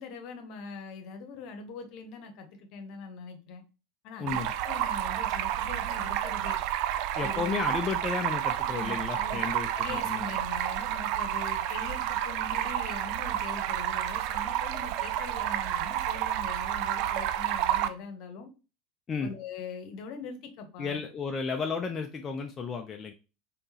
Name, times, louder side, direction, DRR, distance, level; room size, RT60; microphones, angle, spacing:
voice 1, 0.0-3.6 4.0-6.6 7.2-7.6 8.6-9.5 9.7-18.5 19.2-21.0, left 4 dB, 55° left, 7 dB, 1.0 m, -42 dB
voice 2, 4.2-4.5 7.1-10.3 19.1-19.3 20.8-23.1, left 5 dB, 30° left, 3 dB, 0.5 m, -33 dB
Stream, 4.3-17.9, right 12 dB, 55° right, 0.4 m, -30 dB
3.8 x 3.6 x 2.9 m, 0.32 s
hypercardioid pair, 80°, 0 cm